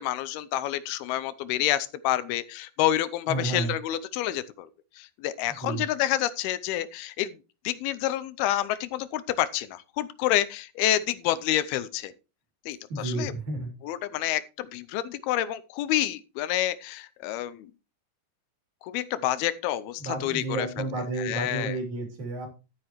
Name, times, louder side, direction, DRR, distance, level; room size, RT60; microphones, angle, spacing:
voice 1, 0.0-4.7 5.0-7.4 7.6-12.1 12.7-13.3 13.8-17.7 18.8-20.9 21.2-21.8, left 13 dB, 80° left, 14 dB, 2.6 m, -28 dB
voice 2, 3.3-3.7 5.6-5.8 12.9-13.7 20.0-22.5, right 2 dB, 50° right, 3 dB, 4.4 m, -31 dB
12.0 x 9.6 x 3.1 m, 0.31 s
omnidirectional pair, 4.5 m